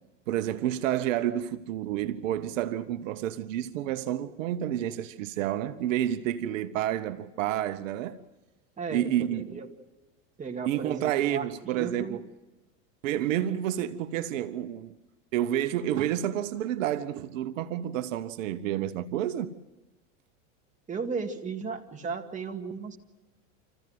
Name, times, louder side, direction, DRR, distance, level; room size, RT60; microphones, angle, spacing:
voice 1, 0.3-8.2 8.9-9.5 10.7-12.2 13.0-14.9 15.3-19.5, right 11 dB, 75° right, 1.0 m, -29 dB
voice 2, 8.8-9.7 10.4-12.2 20.9-23.0, right 5 dB, 20° right, 2.0 m, -35 dB
26.5 x 15.0 x 7.7 m
supercardioid pair, 120°, 39 cm